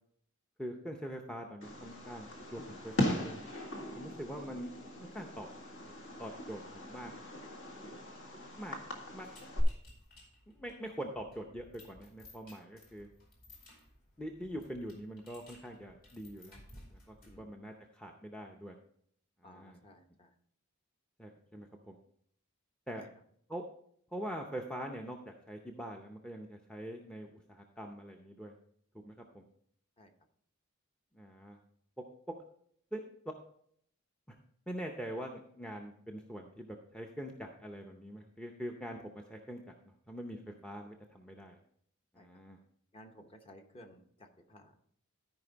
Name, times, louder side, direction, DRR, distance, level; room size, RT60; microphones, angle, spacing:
voice 1, 0.6-3.4 3.9-4.7 5.0-5.5 6.2-7.1 8.6-8.8 9.1-9.3 10.5-13.1 14.2-16.6 16.9-18.8 19.4-19.8 21.2-22.0 22.9-23.0 23.5-23.6 24.1-28.5 29.0-29.4 31.1-31.6 32.9-33.3 34.3-34.4 34.7-41.6 42.1-42.6, equal, 5° left, 2 dB, 0.6 m, -44 dB
Fireworks, 1.6-9.6, left 1 dB, 60° left, 1.8 m, -39 dB
sound 1, 9.2-17.5, left 1 dB, 40° left, 2.6 m, -58 dB
voice 2, 17.2-17.6 19.4-20.3 22.9-23.1 30.0-30.1 42.1-42.4 42.9-44.7, equal, 25° left, 4 dB, 0.9 m, -56 dB
13.5 x 5.1 x 4.0 m, 0.65 s
head